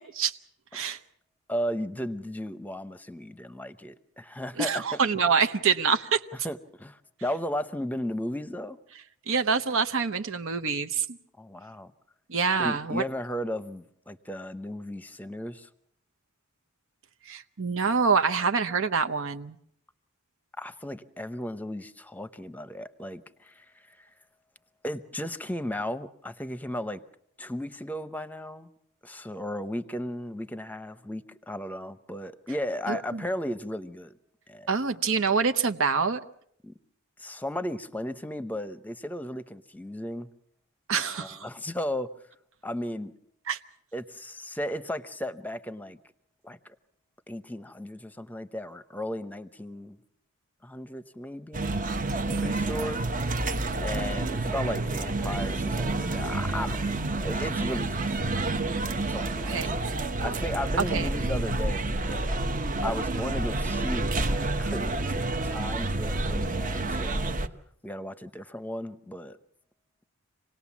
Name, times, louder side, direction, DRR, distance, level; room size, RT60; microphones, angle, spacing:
voice 1, 1.5-5.0 6.4-8.8 11.4-11.9 12.6-15.7 20.6-24.1 24.8-27.0 27.4-28.7 29.0-34.1 34.5-34.7 36.6-36.7 37.2-40.3 41.2-42.1 42.6-43.1 43.9-46.0 46.4-46.7 47.3-50.0 50.6-51.8 52.3-53.0 53.3-53.5 53.8-59.8 60.2-62.3 62.8-67.2 67.8-69.4, left 1 dB, 10° left, 0.8 m, -35 dB
voice 2, 4.6-6.2 9.3-11.1 12.3-13.0 17.3-19.6 32.9-33.2 34.7-36.2 40.9-41.4 43.5-43.6 59.5-59.7 60.9-61.1, right 5 dB, 65° right, 0.9 m, -26 dB
sound 1, 51.5-67.5, right 2 dB, 40° right, 1.0 m, -29 dB
26.5 x 18.5 x 7.3 m
head